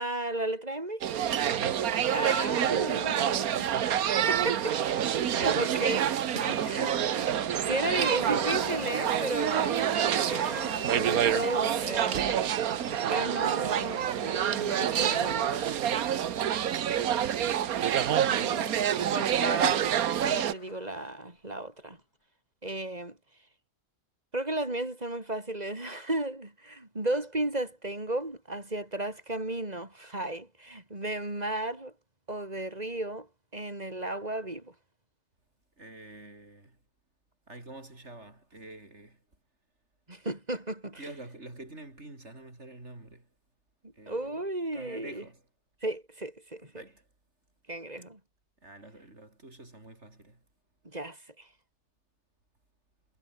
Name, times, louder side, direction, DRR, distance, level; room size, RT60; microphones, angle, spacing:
voice 1, 0.0-1.1 2.1-3.9 4.3-4.7 5.0-6.2 6.7-6.9 7.7-12.7 13.1-15.9 18.2-19.9 20.2-22.0 22.6-23.2 24.3-31.9 32.3-34.7 40.1-41.1 43.8-45.2 45.8-46.7 47.7-48.2 50.8-51.5, right 1 dB, 25° right, 4.4 m, -34 dB
sound 1, 1.0-20.5, right 10 dB, 70° right, 1.4 m, -27 dB
voice 2, 1.3-2.5 4.2-4.6 5.2-5.8 6.3-7.0 35.8-36.8 37.5-39.2 40.9-43.3 43.9-44.3 44.7-45.4 46.7-47.1 48.6-50.5, right 2 dB, 45° right, 5.4 m, -47 dB
Skateboard, 3.9-20.9, left 3 dB, 75° left, 4.4 m, -46 dB
omnidirectional pair, 1.7 m